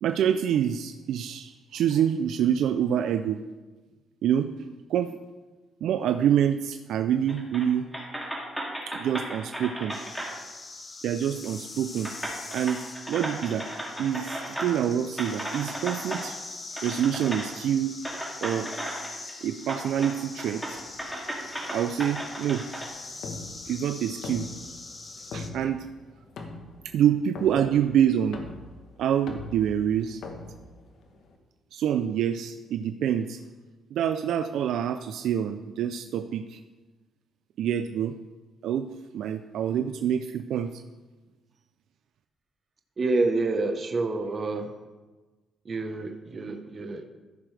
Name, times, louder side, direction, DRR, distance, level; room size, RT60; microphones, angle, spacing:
voice 1, 0.0-3.4 4.2-4.5 4.9-5.2 5.8-7.9 8.2-8.4 8.9-10.0 11.0-12.1 12.5-13.7 14.0-16.4 16.8-18.0 18.4-18.7 19.4-20.8 21.7-22.6 23.7-24.5 25.3-25.8 26.8-28.4 29.0-30.2 31.7-33.4 33.9-36.6 37.6-38.1 38.6-38.9 39.1-40.8, right 9 dB, 75° right, 9 dB, 0.4 m, -26 dB
sound 1, 7.3-7.7 7.9-10.3 11.4-11.5 12.0-14.8 15.2-16.2 16.8-17.5 18.0-19.3 19.7-20.1 20.4-22.9, equal, ahead, 2.5 m, -35 dB
sound 2, 9.9-25.5, left 3 dB, 35° left, 1.1 m, -43 dB
sound 3, 20.7-31.4, left 3 dB, 70° left, 1.2 m, -43 dB
voice 2, 43.0-44.7 45.6-47.1, right 3 dB, 40° right, 5 dB, 1.0 m, -28 dB
14.0 x 6.2 x 3.3 m, 1.2 s
cardioid pair, 90°, 0 cm